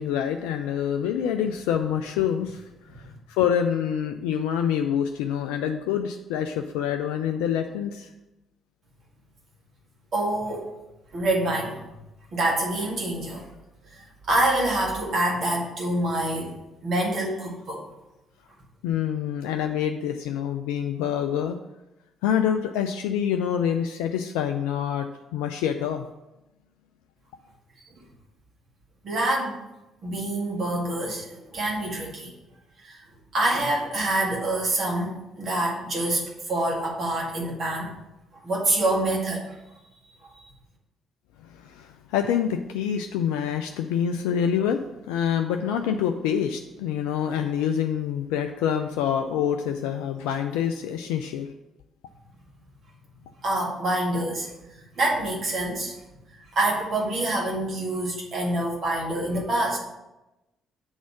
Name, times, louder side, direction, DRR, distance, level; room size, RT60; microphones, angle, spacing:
voice 1, 0.0-8.1 18.8-21.6 22.2-25.1 25.3-26.1 41.4-44.8 45.1-51.5, left 8 dB, 65° left, 5 dB, 0.3 m, -26 dB
voice 2, 10.1-10.7 11.1-11.8 12.3-13.5 13.9-16.5 16.8-17.8 27.9-28.0 29.0-29.6 30.0-32.3 32.8-33.0 33.3-37.9 38.3-39.6 40.2-40.3 53.4-56.0 56.5-59.8, right 1 dB, 45° right, -3 dB, 2.0 m, -26 dB
6.9 x 4.0 x 6.0 m, 0.97 s
figure-of-eight pair, 45°, 0 cm